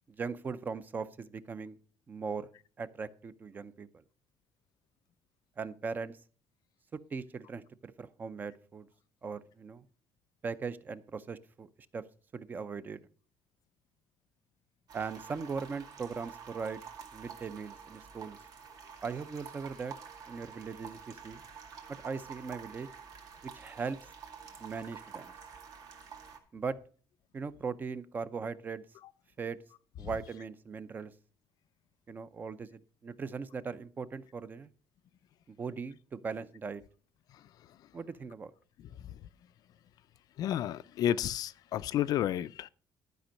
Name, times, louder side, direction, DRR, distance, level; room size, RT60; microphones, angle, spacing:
voice 1, 0.2-1.8 2.1-2.5 2.8-4.0 5.6-6.2 7.1-8.9 9.2-9.8 10.4-11.7 11.9-12.0 12.3-13.0 14.9-16.8 17.1-18.4 19.0-19.9 20.3-21.4 22.0-22.9 23.4-24.1 24.6-25.3 26.5-26.8 27.3-28.9 29.4-29.6 30.0-31.1 32.1-34.7 35.5-36.8 37.9-38.5, right 5 dB, 25° right, 0.5 m, -39 dB
sound 1, 14.9-26.4, right 7 dB, 55° right, 1.9 m, -49 dB
voice 2, 37.3-37.9 38.8-39.3 40.4-42.7, left 11 dB, 55° left, 0.4 m, -33 dB
11.5 x 5.3 x 6.3 m
cardioid pair, 170°, 8 cm